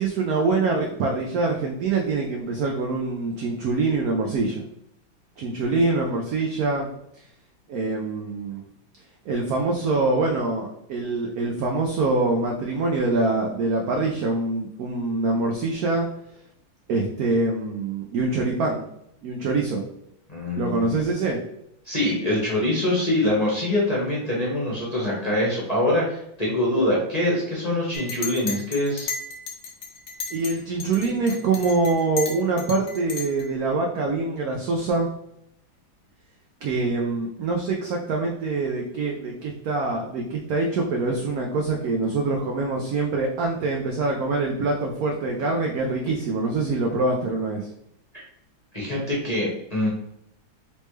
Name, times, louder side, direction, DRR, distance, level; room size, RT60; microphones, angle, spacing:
voice 1, 0.0-4.6 5.4-6.9 7.7-8.6 9.3-16.1 16.9-18.9 19.2-19.8 20.6-21.4 30.3-35.1 36.6-47.7, right 3 dB, 85° right, 0 dB, 0.8 m, -24 dB
voice 2, 20.3-20.9 21.8-29.1 48.7-49.9, left 1 dB, 30° left, -5 dB, 0.8 m, -24 dB
Chink clink, 27.9-30.5 30.8-33.5, left 5 dB, 70° left, 0.6 m, -34 dB
4.1 x 3.5 x 3.1 m, 0.76 s
omnidirectional pair, 2.2 m